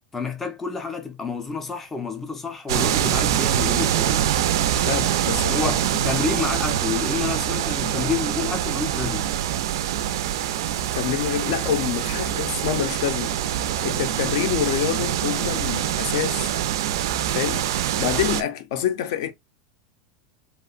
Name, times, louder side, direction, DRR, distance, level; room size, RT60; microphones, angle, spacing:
voice 1, 0.1-4.3 5.4-9.3, left 5 dB, 10° left, 0.4 m, -29 dB
sound 1, 2.7-18.4, right 10 dB, 75° right, 0.3 m, -24 dB
voice 2, 4.8-6.1 10.9-13.3 13.8-16.5 17.3-17.7 18.0-19.3, left 10 dB, 60° left, 0.5 m, -27 dB
2.8 x 2.0 x 2.4 m
supercardioid pair, 165°, 2 cm